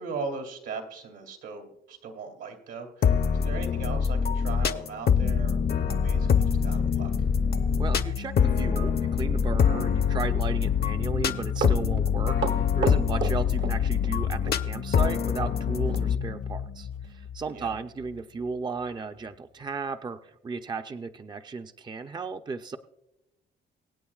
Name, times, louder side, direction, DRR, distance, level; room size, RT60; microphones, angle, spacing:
voice 1, 0.0-7.3 17.5-17.7, right 4 dB, 85° right, 2 dB, 2.5 m, -39 dB
sound 1, 3.0-16.2, left 7 dB, 50° left, 0.7 m, -25 dB
sound 2, 5.2-18.5, left 8 dB, 70° left, 1.2 m, -33 dB
voice 2, 7.8-22.8, right 4 dB, 20° right, 8 dB, 0.5 m, -35 dB
Run, 11.3-14.2 14.4-14.6 15.9-16.1 16.4-16.5 17.0-17.1 17.5-17.6 18.2-18.3, right 6 dB, 70° right, 1.1 m, -33 dB
24.0 x 8.6 x 2.4 m, 0.89 s
cardioid pair, 90°, 20 cm